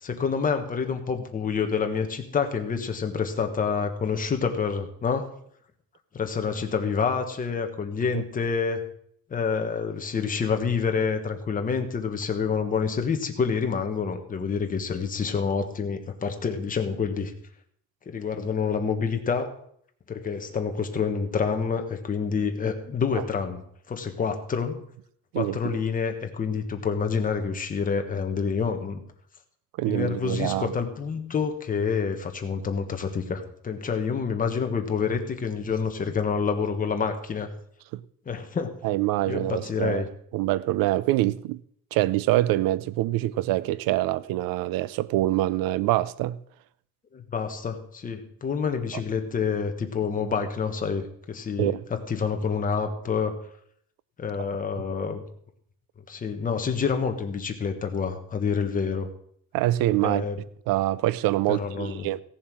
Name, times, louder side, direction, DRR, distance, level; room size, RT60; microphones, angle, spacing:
voice 1, 0.0-5.3 6.1-8.8 9.3-17.3 18.1-19.5 20.1-24.8 25.3-29.0 29.8-37.5 38.3-38.7 39.3-40.1 47.1-53.4 54.2-55.2 56.1-59.1 60.0-60.4 61.5-62.1, left 5 dB, 25° left, 1.2 m, -28 dB
voice 2, 25.3-25.7 29.8-30.7 37.9-38.0 38.8-40.0 40.3-41.6 41.9-46.4 51.6-51.8 59.5-60.2 60.7-62.2, right 16 dB, 75° right, 0.5 m, -25 dB
16.0 x 7.2 x 6.1 m
cardioid pair, 170°, 35 cm